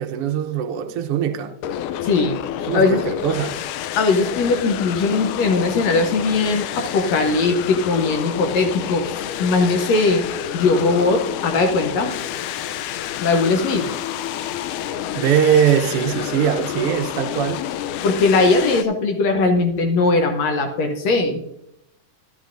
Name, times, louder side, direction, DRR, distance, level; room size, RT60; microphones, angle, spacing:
voice 1, 0.0-1.5 2.7-3.5 15.1-17.6, right 8 dB, 85° right, 1.2 m, -21 dB
sound 1, 1.6-18.8, left 10 dB, 85° left, 2.1 m, -29 dB
voice 2, 2.0-2.4 2.7-3.0 4.0-10.2 10.5-12.1 13.2-13.9 18.0-21.4, left 3 dB, 70° left, 1.8 m, -19 dB
13.0 x 11.5 x 2.6 m
omnidirectional pair, 3.5 m